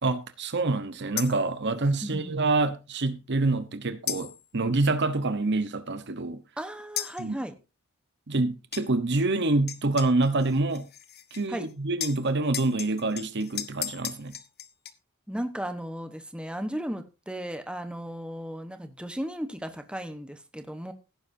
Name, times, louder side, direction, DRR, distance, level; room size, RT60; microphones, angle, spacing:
voice 1, 0.0-6.4 7.2-7.4 8.3-10.9 11.3-14.3, right 2 dB, 55° right, 1.0 m, -26 dB
sound 1, 1.2-1.5 4.1-4.5 7.0-7.2 8.7-8.9 9.7-11.7 12.0-14.9, left 11 dB, 45° left, 1.0 m, -36 dB
voice 2, 2.0-2.3 6.6-7.5 11.5-11.7 15.3-20.9, equal, 5° right, 1.1 m, -35 dB
16.5 x 9.8 x 2.7 m
head